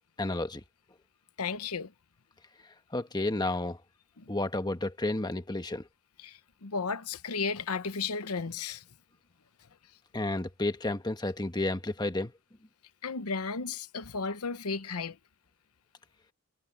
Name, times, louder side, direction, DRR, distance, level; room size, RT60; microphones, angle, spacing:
voice 1, 0.2-0.6 2.9-3.8 4.3-5.9 10.1-12.3, left 2 dB, 20° left, 1.3 m, -31 dB
voice 2, 1.4-1.9 4.2-4.3 6.2-8.8 13.0-15.2, left 4 dB, 90° left, 1.0 m, -34 dB
head